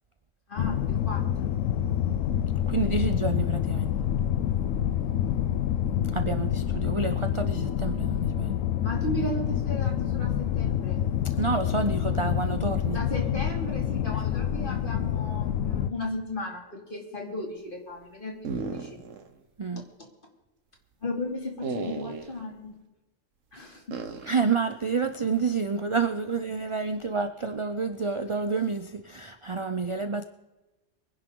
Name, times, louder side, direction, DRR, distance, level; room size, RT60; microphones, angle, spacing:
voice 1, 0.5-1.6 8.8-11.1 12.9-19.0 21.0-22.8 23.5-24.0, left 1 dB, 40° left, 0 dB, 2.9 m, -35 dB
sound 1, 0.6-15.9, left 10 dB, 85° left, 1.1 m, -27 dB
voice 2, 2.7-3.9 6.1-8.6 11.4-13.0 19.6-19.9 24.2-30.2, right 4 dB, 35° right, 9 dB, 0.5 m, -29 dB
sound 2, 18.4-19.3 19.6-19.7 21.6-22.4 23.9-24.4, right 5 dB, 80° right, 1.5 m, -35 dB
23.5 x 11.0 x 3.9 m, 1.1 s
omnidirectional pair, 1.3 m